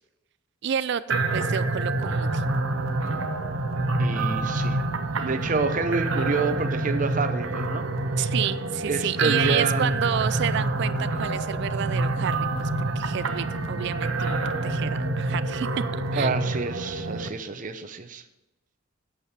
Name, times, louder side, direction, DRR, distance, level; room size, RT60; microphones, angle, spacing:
voice 1, 0.6-2.4 8.2-12.7 13.0-15.7 16.1-16.4, right 8 dB, 60° right, 15 dB, 0.4 m, -30 dB
sound 1, 1.1-17.3, right 2 dB, 80° right, 1.1 m, -27 dB
voice 2, 4.0-4.8 5.2-7.8 8.8-9.9 16.1-18.2, right 4 dB, 40° right, 8 dB, 0.7 m, -28 dB
8.8 x 7.7 x 6.4 m, 1.0 s
head